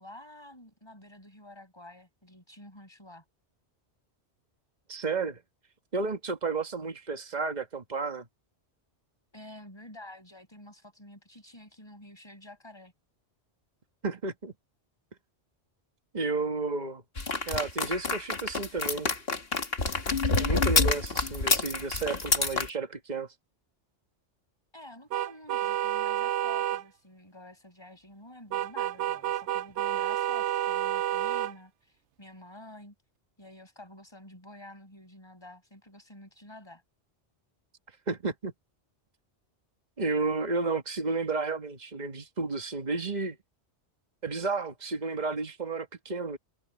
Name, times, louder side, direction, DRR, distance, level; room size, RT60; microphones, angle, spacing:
voice 1, 0.0-3.2 9.3-12.9 24.7-32.9 33.4-36.8, left 1 dB, 25° left, 6.6 m, -49 dB
voice 2, 4.9-5.4 5.9-8.3 14.0-14.5 16.1-17.0 17.5-19.1 20.3-23.3 38.1-38.5 40.0-43.4 44.2-46.4, right 3 dB, 40° right, 1.8 m, -32 dB
sound 1, 17.2-22.7, left 3 dB, 60° left, 2.3 m, -27 dB
sound 2, 25.1-26.8 28.5-31.5, right 12 dB, 85° right, 0.9 m, -29 dB
omnidirectional pair, 1.1 m